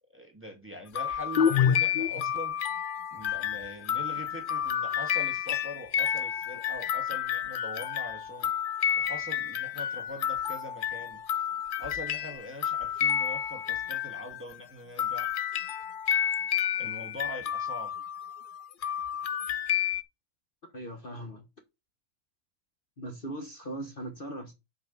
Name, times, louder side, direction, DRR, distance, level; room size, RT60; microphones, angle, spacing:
voice 1, 0.1-2.5 3.1-8.5 9.0-11.2 11.8-15.3 16.8-17.9, left 1 dB, 10° right, 1.9 m, -42 dB
sound 1, 1.0-14.5 15.0-20.0, left 9 dB, 70° left, 0.5 m, -30 dB
voice 2, 20.7-21.4 23.0-24.5, right 1 dB, 40° left, 1.4 m, -39 dB
7.0 x 5.5 x 5.4 m
omnidirectional pair, 1.6 m